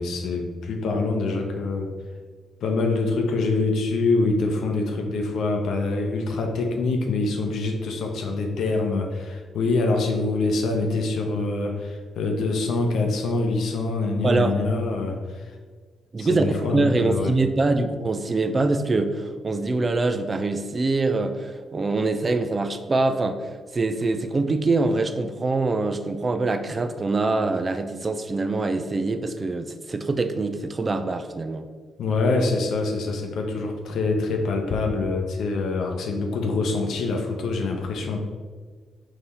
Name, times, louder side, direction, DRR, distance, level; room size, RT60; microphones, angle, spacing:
voice 1, 0.0-1.9 2.6-15.5 16.2-17.3 32.0-38.2, left 3 dB, 65° left, 3 dB, 0.6 m, -25 dB
voice 2, 14.2-14.7 16.1-31.7, right 3 dB, 35° right, 8 dB, 0.4 m, -24 dB
3.7 x 2.7 x 4.2 m, 1.5 s
hypercardioid pair, 45°, 0 cm